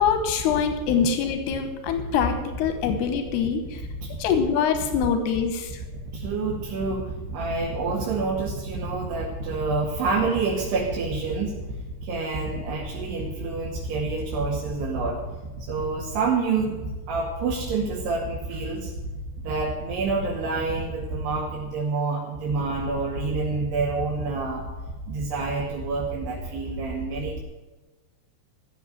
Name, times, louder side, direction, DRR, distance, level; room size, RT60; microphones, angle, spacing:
voice 1, 0.0-3.8 4.2-5.7, left 7 dB, 85° left, 8 dB, 3.2 m, -24 dB
voice 2, 6.1-11.6 12.0-15.2 15.6-18.9 19.4-24.7 25.1-27.4, right 3 dB, 80° right, -3 dB, 4.3 m, -27 dB
15.5 x 7.0 x 9.5 m, 1.2 s
omnidirectional pair, 4.6 m